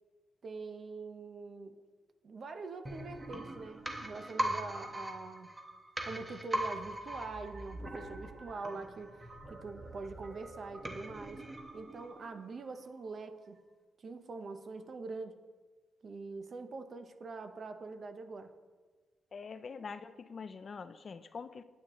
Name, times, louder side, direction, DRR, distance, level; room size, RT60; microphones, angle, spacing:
voice 1, 0.4-1.8 2.2-5.5 6.0-11.4 11.7-13.6 14.0-15.4 16.0-18.5, right 3 dB, 40° right, 8 dB, 0.6 m, -44 dB
sound 1, 2.8-12.5 12.9-13.0, right 1 dB, 15° right, 0.9 m, -41 dB
voice 2, 19.3-21.6, left 5 dB, 40° left, 12 dB, 0.3 m, -44 dB
9.1 x 8.9 x 3.1 m, 1.4 s
wide cardioid pair, 155°, 0 cm